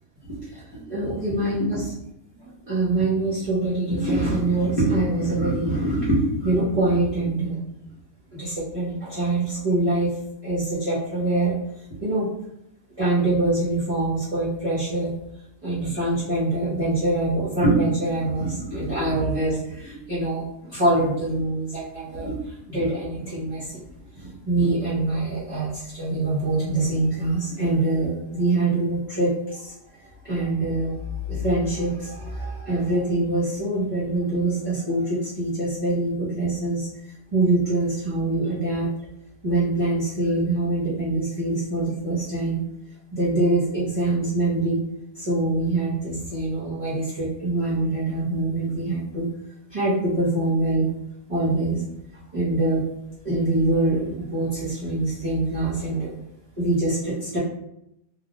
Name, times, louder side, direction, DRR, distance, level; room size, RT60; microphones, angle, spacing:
voice 1, 0.3-1.8 2.4-7.6 8.3-10.1 10.4-11.5 11.9-12.3 13.0-15.1 15.6-22.4 22.7-23.7 24.2-29.7 30.2-30.9 31.3-36.9 37.3-38.9 39.4-42.6 43.1-44.8 45.1-49.2 49.7-50.9 51.3-51.8 52.3-52.9 53.2-56.1 56.6-57.4, right 2 dB, 35° right, -11 dB, 0.7 m, -24 dB
2.4 x 2.1 x 2.8 m, 0.81 s
omnidirectional pair, 1.3 m